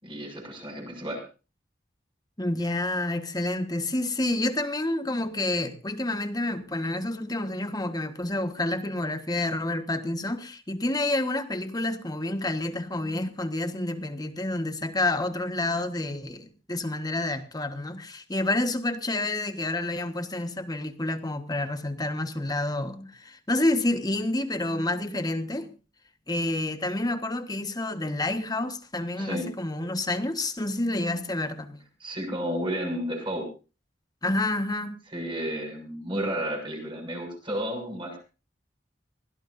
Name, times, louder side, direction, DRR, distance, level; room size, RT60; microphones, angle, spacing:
voice 1, 0.0-1.2 29.2-29.5 32.0-33.5 35.1-38.2, equal, 30° right, 6.7 m, -32 dB
voice 2, 2.4-25.7 26.3-31.8 34.2-35.0, left 2 dB, 20° left, 1.4 m, -29 dB
24.0 x 16.5 x 2.7 m
head